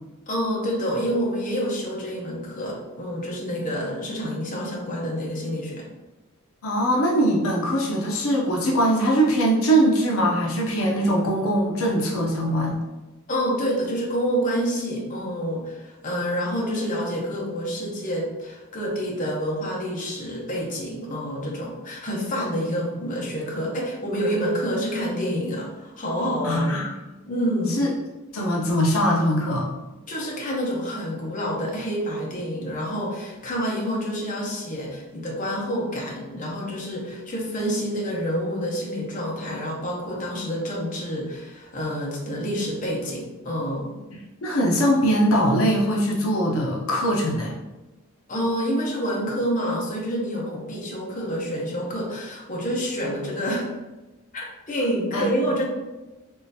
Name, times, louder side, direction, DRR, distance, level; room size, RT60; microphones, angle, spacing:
voice 1, 0.3-5.9 13.3-26.9 27.3-27.8 30.1-44.0 48.3-53.7 54.3-55.7, equal, 40° left, -3 dB, 0.7 m, -28 dB
voice 2, 6.6-12.8 26.4-26.9 27.8-27.9 28.3-29.7 44.1-47.5 55.1-55.3, equal, 75° left, -2 dB, 0.6 m, -22 dB
3.7 x 3.2 x 2.7 m, 1.1 s
head